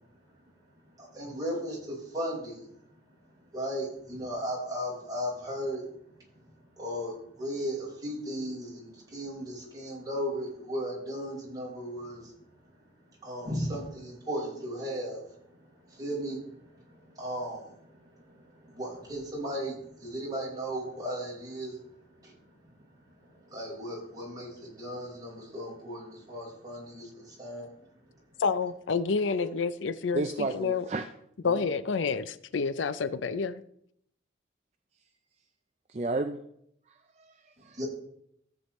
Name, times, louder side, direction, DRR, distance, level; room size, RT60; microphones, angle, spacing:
voice 1, 1.0-2.6 3.5-5.9 6.8-12.3 13.2-15.2 16.0-16.4 17.2-17.6 18.7-21.8 22.2-22.3 23.5-27.7 37.7-37.8, equal, 20° right, -6 dB, 4.6 m, -35 dB
voice 2, 28.4-30.8 31.4-33.6, left 5 dB, 90° left, 14 dB, 0.5 m, -29 dB
voice 3, 30.1-31.1 35.9-36.4 37.2-37.8, right 2 dB, 35° right, 7 dB, 0.4 m, -32 dB
14.0 x 8.1 x 3.1 m, 0.72 s
head